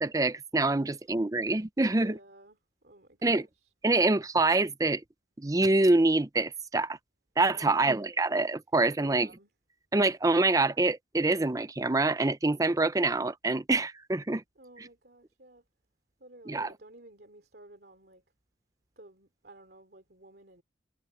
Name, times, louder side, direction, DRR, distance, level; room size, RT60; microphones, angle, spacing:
voice 1, 0.0-2.2 3.2-3.5 3.8-5.0 5.4-7.0 7.4-9.3 9.9-14.4 16.5-16.7, right 2 dB, 20° right, 0.5 m, -26 dB
voice 2, 0.8-1.2 1.9-3.7 7.5-8.1 8.9-9.5 14.6-15.6 16.2-18.2 19.0-20.6, right 1 dB, 60° right, 2.7 m, -54 dB
head